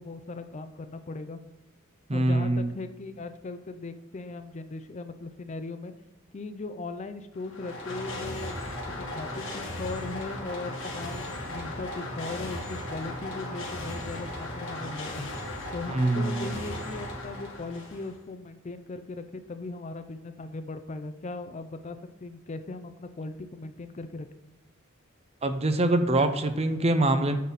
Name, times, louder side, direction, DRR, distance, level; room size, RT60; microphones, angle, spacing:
voice 1, 0.0-1.4 2.1-5.9 6.3-8.6 8.9-15.3 15.7-24.3, left 3 dB, 35° left, 9 dB, 0.4 m, -38 dB
voice 2, 2.1-2.7 15.9-16.5 25.4-27.4, right 2 dB, 30° right, 9 dB, 0.6 m, -24 dB
sound 1, 7.3-18.2, left 1 dB, 70° left, 2.0 m, -36 dB
9.3 x 4.0 x 4.1 m, 1.0 s
head